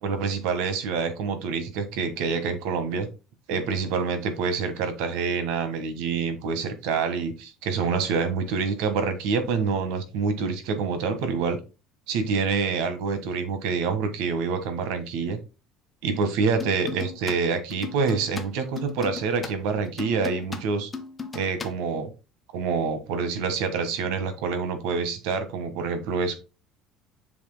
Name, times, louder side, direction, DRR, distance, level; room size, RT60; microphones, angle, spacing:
voice 1, 0.0-3.1 3.5-11.6 12.1-15.4 16.0-20.9 21.3-22.1 22.5-26.3, right 5 dB, 70° right, 9 dB, 1.5 m, -27 dB
sound 1, 16.6-17.4 17.7-21.7, left 5 dB, 15° left, 0.7 m, -36 dB
7.5 x 5.8 x 2.2 m, 0.30 s
cardioid pair, 175°, 0 cm